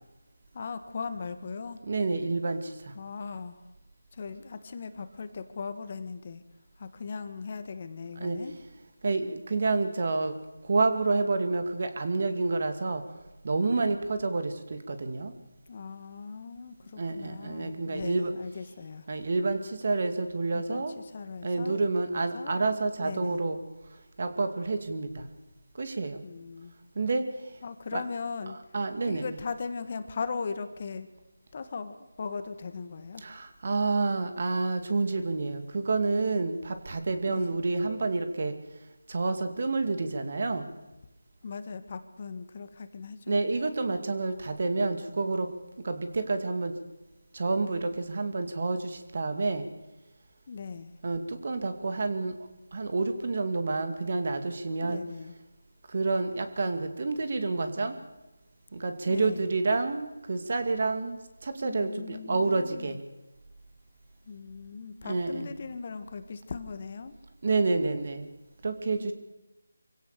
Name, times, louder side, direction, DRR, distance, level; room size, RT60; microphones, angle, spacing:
voice 1, 0.5-1.8 2.9-3.6 4.1-6.4 6.8-8.5 15.7-19.1 20.5-22.6 23.0-23.4 26.2-26.7 27.6-28.6 29.1-31.1 31.5-33.2 37.3-37.5 41.4-43.4 50.5-50.9 54.8-55.4 59.0-59.5 61.6-63.0 64.3-67.1 69.0-69.1, left 5 dB, 35° left, 10 dB, 1.6 m, -39 dB
voice 2, 1.8-2.9 8.2-8.4 9.0-10.3 10.6-13.0 13.4-15.3 17.0-18.3 19.1-21.0 21.4-23.6 24.2-25.3 25.7-26.2 27.0-27.3 27.9-28.0 28.7-29.2 33.2-38.5 39.1-40.7 43.3-45.5 45.8-46.7 47.3-49.7 51.0-55.0 55.9-58.0 58.7-63.0 65.0-65.5 67.4-68.3 68.6-69.1, right 3 dB, 45° right, 8 dB, 2.5 m, -29 dB
25.0 x 16.5 x 6.8 m, 1.0 s
figure-of-eight pair, 170°, 0 cm